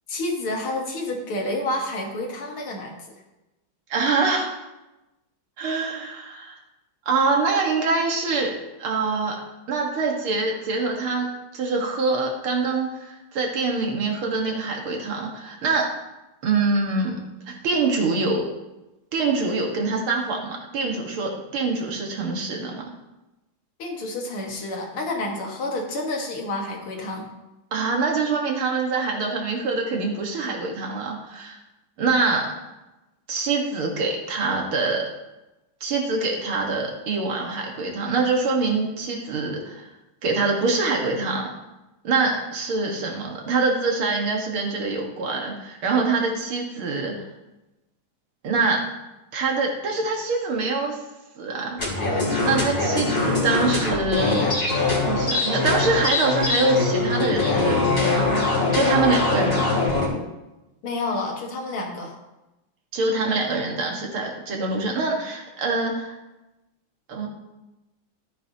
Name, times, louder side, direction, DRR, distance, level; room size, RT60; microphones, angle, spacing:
voice 1, 0.1-3.0 23.8-27.3 60.8-62.2, left 2 dB, 90° left, 0 dB, 2.6 m, -29 dB
voice 2, 3.9-4.6 5.6-6.6 7.1-9.4 9.7-11.3 11.5-16.0 16.4-17.2 17.5-18.5 19.1-22.8 27.7-31.6 32.0-32.6 33.3-35.1 35.8-39.9 40.2-41.5 42.0-47.2 48.4-48.9 49.3-51.0 51.4-54.4 55.1-58.5 58.7-59.8 62.9-66.2 67.1-67.3, right 3 dB, 80° right, 0 dB, 2.5 m, -25 dB
sound 1, 51.8-60.1, left 3 dB, 25° left, 3.3 m, -22 dB
13.5 x 9.0 x 2.9 m, 0.99 s
omnidirectional pair, 2.3 m